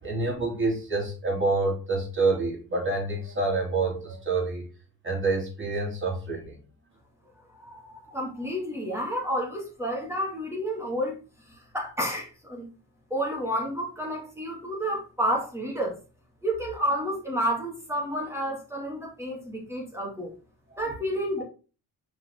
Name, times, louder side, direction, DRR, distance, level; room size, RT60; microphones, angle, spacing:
voice 1, 0.0-4.6 5.0-6.6 20.7-20.8, right 3 dB, 30° right, 3.7 m, -27 dB
voice 2, 7.5-12.7 13.1-16.0 16.4-20.3 20.8-21.4, equal, 5° right, 2.9 m, -30 dB
5.6 x 4.9 x 3.7 m
cardioid pair, 70°, 41 cm